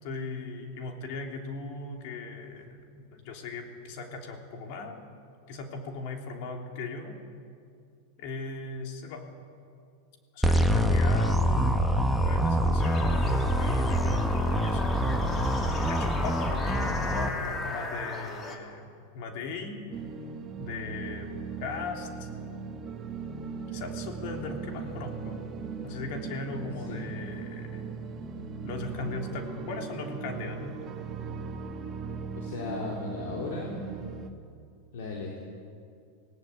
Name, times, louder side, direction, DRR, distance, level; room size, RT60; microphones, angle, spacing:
voice 1, 0.0-5.0 5.5-7.2 8.2-9.3 10.3-15.0 15.9-19.8 20.6-22.3 23.7-25.4 25.8-27.8 28.6-30.8, left 3 dB, 60° left, 2 dB, 3.3 m, -38 dB
sound 1, 10.4-17.3, equal, ahead, 1.4 m, -25 dB
sound 2, 12.8-18.6, left 3 dB, 25° left, 2.7 m, -37 dB
sound 3, 19.9-34.3, right 5 dB, 25° right, 1.8 m, -38 dB
voice 2, 26.8-27.2 32.3-33.9 34.9-35.4, left 3 dB, 75° left, -2 dB, 3.4 m, -36 dB
19.5 x 18.0 x 8.4 m, 2.3 s
hypercardioid pair, 125°, 0 cm